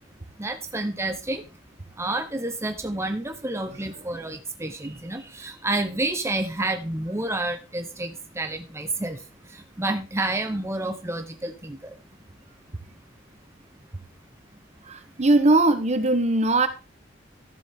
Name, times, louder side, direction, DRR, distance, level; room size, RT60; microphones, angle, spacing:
voice 1, 0.4-1.4 2.0-9.2 9.8-11.9, right 2 dB, 15° right, 6 dB, 1.0 m, -29 dB
voice 2, 14.8-16.7, right 2 dB, 35° right, 10 dB, 1.1 m, -20 dB
13.5 x 7.2 x 3.7 m, 0.29 s
head